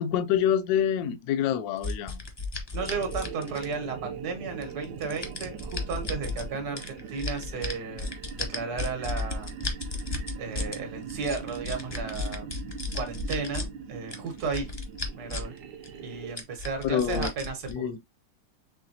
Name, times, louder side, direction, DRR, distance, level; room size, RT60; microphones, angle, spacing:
voice 1, 0.0-2.2 16.8-17.3 17.7-18.0, left 9 dB, 70° left, 0.9 m, -26 dB
sound 1, 1.8-4.0 4.6-6.5 6.8-10.8 11.1-13.7 14.1-15.6 15.8-15.9 16.4-17.7, left 3 dB, 30° left, 0.5 m, -34 dB
voice 2, 2.7-9.5 10.4-12.6 12.9-14.7 15.1-15.5 16.0-17.9, right 4 dB, 60° right, 1.7 m, -34 dB
sound 2, 2.8-16.4, right 7 dB, 80° right, 1.3 m, -41 dB
4.9 x 3.4 x 2.7 m
omnidirectional pair, 1.9 m